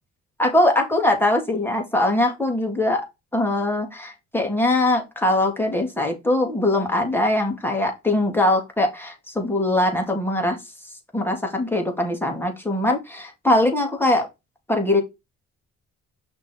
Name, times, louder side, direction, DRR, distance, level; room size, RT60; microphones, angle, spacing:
voice 1, 0.4-3.1 3.3-10.6 11.1-14.3 14.7-15.0, left 1 dB, 5° left, 2 dB, 2.8 m, -21 dB
5.9 x 3.6 x 4.8 m, 0.22 s
cardioid pair, 90°, 30 cm